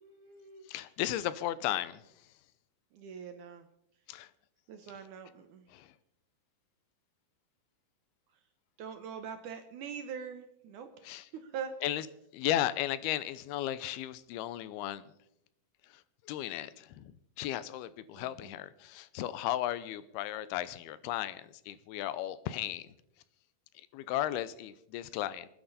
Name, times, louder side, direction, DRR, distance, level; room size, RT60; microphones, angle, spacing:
voice 1, 0.0-0.7 2.9-3.7 4.7-5.7 8.8-10.9 11.3-11.7 18.1-18.6, right 7 dB, 70° right, 7 dB, 2.1 m, -43 dB
voice 2, 0.7-2.0 4.1-4.3 5.7-5.9 11.0-11.3 11.8-12.1 12.3-15.1 15.9-22.9 23.9-25.5, left 13 dB, 85° left, 15 dB, 2.6 m, -35 dB
26.5 x 9.8 x 4.1 m, 0.77 s
omnidirectional pair, 4.5 m